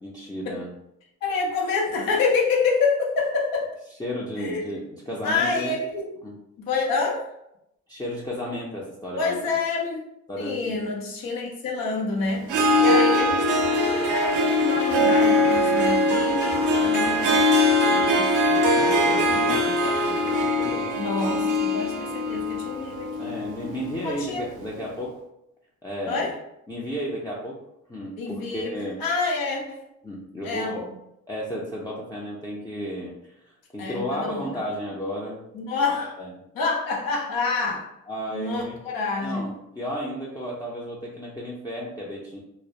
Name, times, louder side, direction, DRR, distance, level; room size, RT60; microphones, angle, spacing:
voice 1, 0.0-0.7 4.0-5.7 6.2-6.3 7.9-9.4 10.3-10.9 12.6-13.1 18.5-21.0 23.2-25.2 25.8-26.3 26.7-27.6 27.9-29.0 30.0-30.8 31.3-33.3 33.7-35.4 36.2-36.3 38.1-38.8 39.2-42.4, equal, 10° left, -6 dB, 0.4 m, -33 dB
voice 2, 1.2-3.7 4.4-4.6 5.2-6.1 6.6-7.3 9.2-10.0 10.4-12.5 12.8-18.3 21.0-23.3 24.0-24.4 26.1-26.4 28.2-28.7 29.0-29.8 30.4-30.9 33.8-34.5 35.5-36.2 36.5-37.9 38.3-39.5, left 4 dB, 80° left, -1 dB, 0.7 m, -27 dB
Harp, 12.4-24.3, left 1 dB, 60° right, 0.5 m, -22 dB
sound 1, 13.3-21.0, left 2 dB, 60° left, 0.9 m, -37 dB
2.2 x 2.0 x 2.7 m, 0.81 s
cardioid pair, 65°, 34 cm